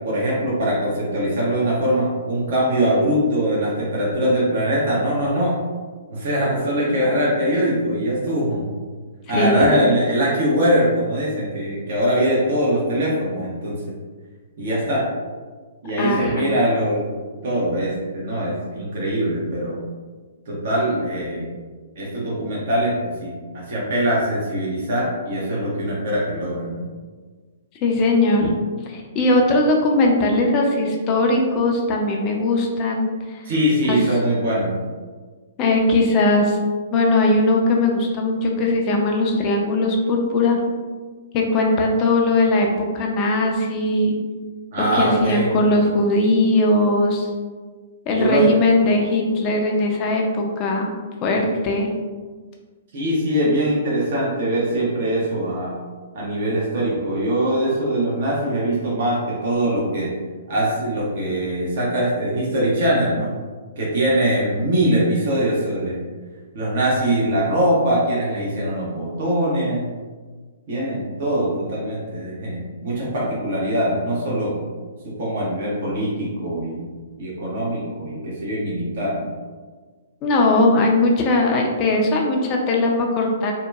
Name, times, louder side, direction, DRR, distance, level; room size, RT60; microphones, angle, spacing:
voice 1, 0.0-5.6 6.1-8.7 9.3-13.8 14.6-15.0 15.8-17.0 17.4-19.8 20.5-21.5 22.0-26.8 33.4-34.7 44.7-45.5 48.1-48.5 52.9-55.7 56.1-60.1 60.5-63.3 63.8-66.0 66.5-69.9 70.7-74.5 75.0-76.9 77.2-79.3, right 1 dB, 55° right, -6 dB, 0.8 m, -22 dB
voice 2, 9.3-9.8 16.0-16.4 27.8-28.5 28.9-33.4 33.9-34.0 35.6-36.6 36.9-40.6 41.3-44.2 44.8-47.3 48.1-50.9 51.2-51.9 80.2-83.5, left 2 dB, 30° left, 0 dB, 0.4 m, -19 dB
2.8 x 2.2 x 2.3 m, 1.4 s
figure-of-eight pair, 120°, 0 cm